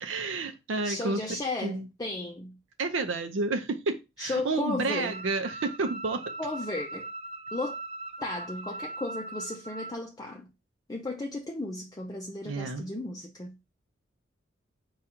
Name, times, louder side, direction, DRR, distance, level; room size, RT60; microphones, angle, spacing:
voice 1, 0.0-1.2 1.6-1.9 2.8-6.2 12.5-12.9, right 3 dB, 80° right, 0.6 m, -30 dB
voice 2, 0.8-2.6 4.2-5.2 6.4-7.1 7.5-7.8 8.2-10.5 10.9-13.6, left 2 dB, 20° left, 0.4 m, -34 dB
sound 1, 5.1-10.0, right 2 dB, 35° right, 0.5 m, -40 dB
4.9 x 2.3 x 4.3 m
head